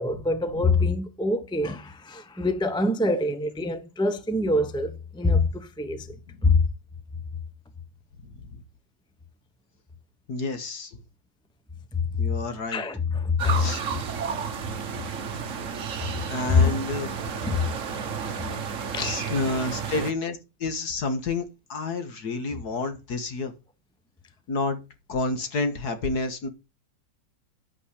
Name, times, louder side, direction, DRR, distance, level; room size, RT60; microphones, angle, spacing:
voice 1, 0.0-6.2 6.4-6.7 11.9-12.3 12.7-13.9 16.5-16.7 17.5-17.7 18.9-19.2 19.6-19.7, left 3 dB, 5° left, 0.4 m, -24 dB
voice 2, 6.1-6.4 8.2-8.6 10.3-11.0 12.2-12.8 13.5-13.8 16.3-17.1 19.0-23.5 24.5-24.8 25.1-26.5, left 3 dB, 60° left, 1.9 m, -30 dB
sound 1, 13.4-20.1, right 6 dB, 50° right, 1.3 m, -32 dB
10.5 x 8.6 x 4.9 m
omnidirectional pair, 2.0 m